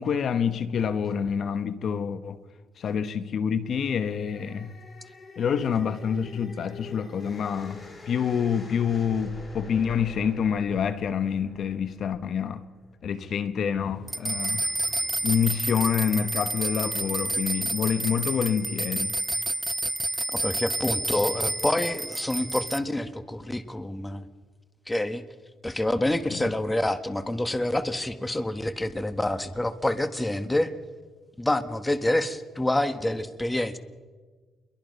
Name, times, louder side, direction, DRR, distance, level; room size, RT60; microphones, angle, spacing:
voice 1, 0.0-2.4 2.8-4.8 5.4-12.6 13.0-14.6 15.2-19.2 26.3-26.5, left 7 dB, 60° left, 1.1 m, -27 dB
sound 1, 3.6-12.9, left 3 dB, 35° left, 4.5 m, -46 dB
sound 2, 14.1-22.8, right 2 dB, 15° right, 0.6 m, -29 dB
voice 2, 20.3-24.3 24.9-25.2 25.6-30.7 31.4-33.8, left 1 dB, 10° left, 1.4 m, -27 dB
28.0 x 22.5 x 5.4 m
cardioid pair, 90°, 0 cm